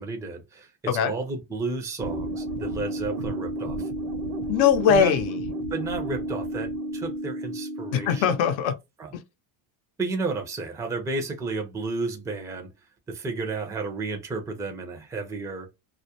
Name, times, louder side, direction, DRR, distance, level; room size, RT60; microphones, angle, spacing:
voice 1, 0.0-3.9 4.9-5.1 5.7-8.3 9.0-9.1 10.0-12.7 13.1-15.7, right 3 dB, 5° right, 0.4 m, -32 dB
sound 1, 2.0-8.6, right 1 dB, 70° right, 0.7 m, -32 dB
voice 2, 4.5-5.4 7.9-8.7, left 7 dB, 65° left, 0.7 m, -21 dB
2.3 x 2.1 x 2.8 m
cardioid pair, 125°, 50 cm